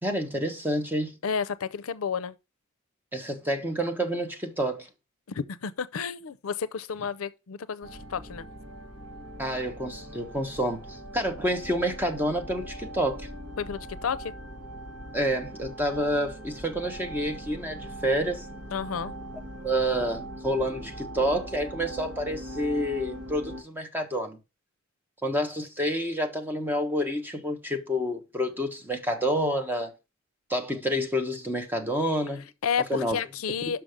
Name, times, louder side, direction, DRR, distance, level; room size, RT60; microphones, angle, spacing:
voice 1, 0.0-1.1 3.1-4.9 9.4-13.3 15.1-18.5 19.5-24.4 25.2-29.9 30.5-32.5 32.9-33.2, equal, 10° right, 1.2 m, -28 dB
voice 2, 1.2-2.3 5.3-8.5 13.6-14.3 18.7-19.1 32.6-33.8, left 6 dB, 80° left, 0.5 m, -31 dB
sound 1, 7.8-23.6, right 1 dB, 65° right, 1.9 m, -41 dB
6.2 x 5.9 x 5.0 m
head